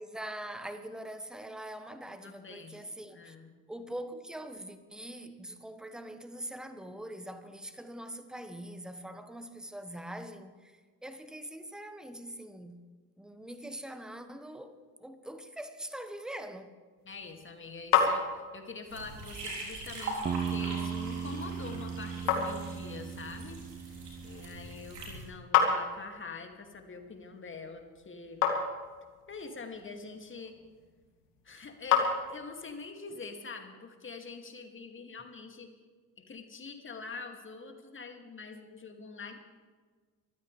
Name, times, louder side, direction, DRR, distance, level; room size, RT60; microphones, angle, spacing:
voice 1, 0.0-3.3 3.7-12.8 13.2-16.7, right 1 dB, ahead, 1.4 m, -43 dB
voice 2, 2.2-2.7 3.1-3.5 17.0-23.6 24.2-28.5 29.3-30.6 31.4-35.7 36.2-39.4, left 4 dB, 25° left, 2.4 m, -45 dB
sound 1, 17.0-32.8, left 7 dB, 55° left, 2.7 m, -34 dB
sound 2, 18.9-25.2, right 2 dB, 75° right, 3.8 m, -42 dB
sound 3, 20.2-24.9, right 7 dB, 15° right, 0.4 m, -37 dB
24.0 x 15.0 x 3.4 m
figure-of-eight pair, 60°, 48 cm